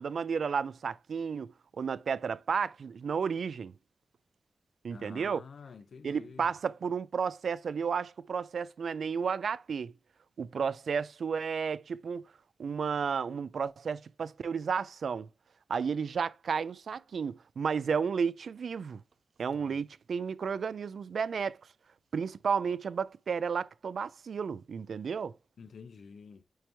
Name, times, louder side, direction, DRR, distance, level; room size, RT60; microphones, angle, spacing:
voice 1, 0.0-3.7 4.8-5.4 6.0-9.9 10.4-12.2 12.6-15.3 15.7-19.0 19.4-21.6 22.1-25.3, right 6 dB, 85° right, 0.3 m, -32 dB
voice 2, 4.9-6.5 19.5-19.8 25.6-26.4, left 5 dB, 80° left, 0.5 m, -49 dB
9.1 x 3.0 x 3.4 m
wide cardioid pair, 155°, 0 cm